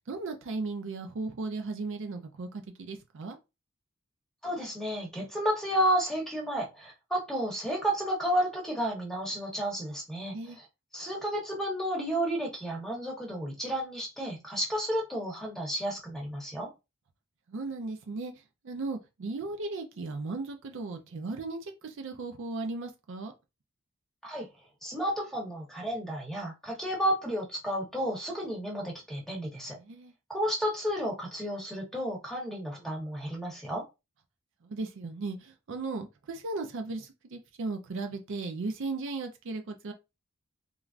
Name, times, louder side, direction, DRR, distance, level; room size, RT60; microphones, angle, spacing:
voice 1, 0.1-3.4 10.2-10.6 17.5-18.3 18.6-23.3 29.7-30.1 34.6-39.9, right 3 dB, 60° right, 0.5 m, -36 dB
voice 2, 4.4-10.6 10.9-16.7 24.2-24.5 24.8-29.8 30.3-33.8, equal, ahead, 0.9 m, -32 dB
3.1 x 2.3 x 2.4 m
head